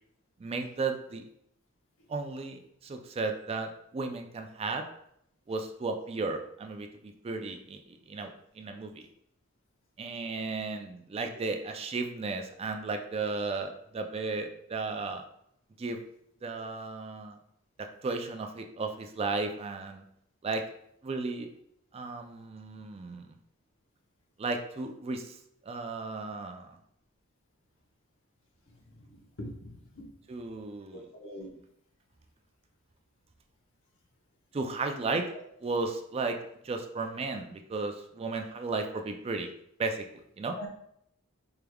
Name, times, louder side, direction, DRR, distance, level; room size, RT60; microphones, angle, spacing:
voice 1, 0.4-1.2 2.1-4.8 5.5-9.1 10.0-15.2 15.8-16.0 16.4-17.4 18.0-20.0 20.4-20.6 21.0-21.5 21.9-23.4 24.4-25.4 25.6-26.8 30.3-31.1 34.5-35.2 35.6-36.4 36.6-39.5 39.8-40.6, right 3 dB, 30° right, 5 dB, 0.3 m, -34 dB
voice 2, 28.9-30.0 30.9-31.5 40.6-40.7, left 1 dB, 70° left, 0 dB, 0.9 m, -43 dB
4.5 x 3.4 x 2.3 m, 0.73 s
head